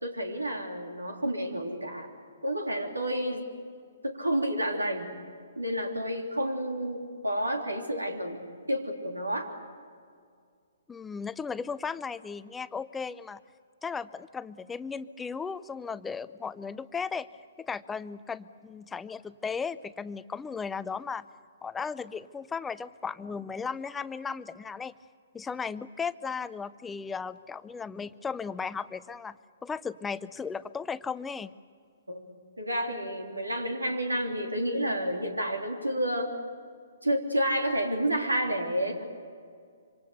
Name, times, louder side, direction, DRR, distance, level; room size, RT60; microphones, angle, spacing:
voice 1, 0.0-2.1 2.4-3.4 4.0-5.1 5.6-8.4 8.7-9.5 32.1-32.3 32.6-36.3 37.0-39.0, equal, 90° right, 3 dB, 3.4 m, -30 dB
voice 2, 10.9-13.4 13.8-17.3 17.6-21.2 21.6-24.9 25.3-31.5, left 5 dB, 10° left, 15 dB, 0.6 m, -36 dB
26.0 x 25.5 x 6.9 m, 2.2 s
figure-of-eight pair, 125°, 0 cm